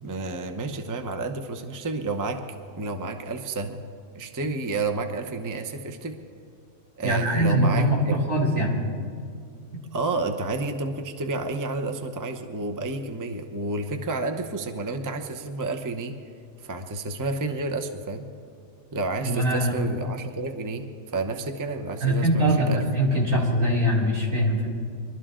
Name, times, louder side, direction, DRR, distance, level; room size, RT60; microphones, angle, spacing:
voice 1, 0.0-2.4 2.8-3.8 4.1-6.2 7.0-8.2 9.9-16.2 16.6-18.3 18.9-20.9 21.1-22.8, right 3 dB, 20° right, 5 dB, 0.6 m, -30 dB
voice 2, 7.0-8.8 19.2-19.7 22.0-24.7, equal, 75° right, -3 dB, 3.3 m, -22 dB
23.5 x 12.5 x 3.8 m, 2.4 s
omnidirectional pair, 1.4 m